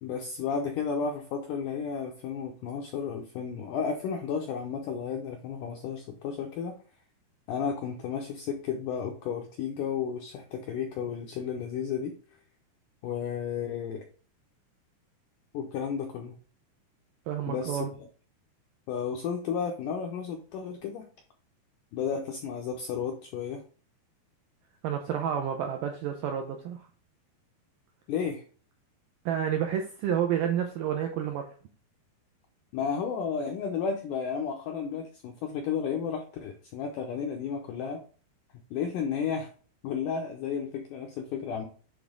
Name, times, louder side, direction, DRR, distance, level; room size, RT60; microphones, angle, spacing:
voice 1, 0.0-6.7 7.5-12.1 13.0-14.0 15.5-16.4 17.5-17.9 18.9-21.1 21.9-23.6 28.1-28.4 32.7-38.0 38.7-39.5 39.8-41.7, left 6 dB, 85° left, 3 dB, 1.8 m, -33 dB
voice 2, 17.3-17.9 24.8-26.8 29.3-31.5, right 9 dB, 80° right, 4 dB, 1.9 m, -29 dB
8.3 x 3.5 x 3.7 m, 0.40 s
omnidirectional pair, 4.7 m